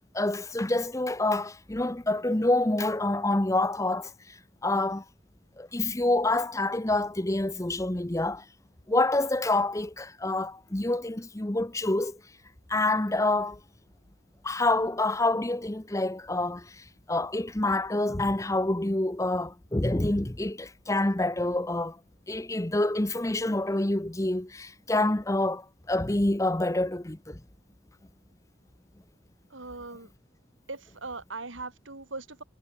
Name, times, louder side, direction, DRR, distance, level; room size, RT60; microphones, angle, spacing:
voice 1, 0.1-4.3 4.6-5.0 5.6-8.4 8.9-12.2 12.7-13.6 14.4-22.0 22.3-27.4, left 2 dB, 15° left, 0.8 m, -27 dB
voice 2, 29.5-30.1 30.7-32.4, right 3 dB, 80° right, 4.1 m, -40 dB
head